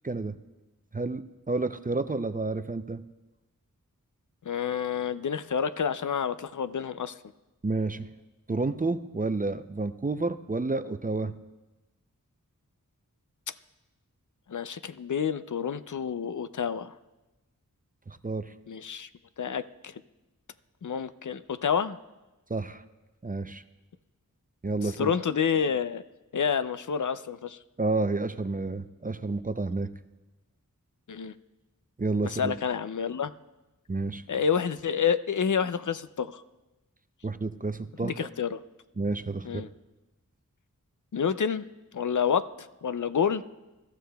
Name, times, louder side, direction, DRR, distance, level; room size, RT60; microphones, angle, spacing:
voice 1, 0.0-0.4 0.9-3.0 7.6-8.1 8.5-11.3 18.1-18.5 22.5-22.8 23.2-23.6 24.6-25.1 27.8-29.9 32.0-32.5 33.9-34.2 37.2-38.3 39.0-39.7, right 3 dB, 25° right, 11 dB, 0.5 m, -30 dB
voice 2, 4.4-7.1 14.5-16.9 18.7-19.1 19.4-20.0 20.8-22.0 24.8-26.0 26.3-27.6 31.1-31.3 32.3-33.3 34.3-36.4 38.0-38.6 39.4-39.7 41.1-41.7 41.9-43.4, left 7 dB, 65° left, 13 dB, 0.5 m, -29 dB
23.5 x 13.0 x 2.3 m, 1.1 s
wide cardioid pair, 50°, 33 cm